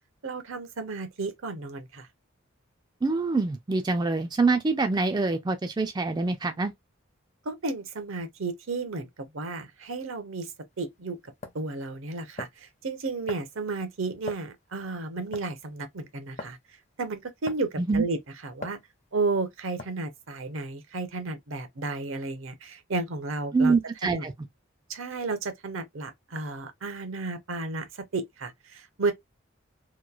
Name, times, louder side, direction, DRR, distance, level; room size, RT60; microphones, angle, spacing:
voice 1, 0.2-2.1 7.4-10.5 10.8-11.2 11.5-16.6 17.0-18.8 19.1-23.7 24.0-24.2 24.9-29.1, right 3 dB, 75° right, 0.7 m, -33 dB
voice 2, 3.0-6.7 17.8-18.0 23.5-24.3, right 3 dB, 20° right, 0.3 m, -25 dB
sound 1, 10.7-10.8 11.4-11.6 12.4-12.7 13.3-13.6 14.3-14.5 15.3-15.6 16.4-16.6 17.5-17.8 18.6-18.8 19.8-20.1, left 2 dB, 35° left, 0.5 m, -40 dB
3.0 x 2.3 x 2.3 m
head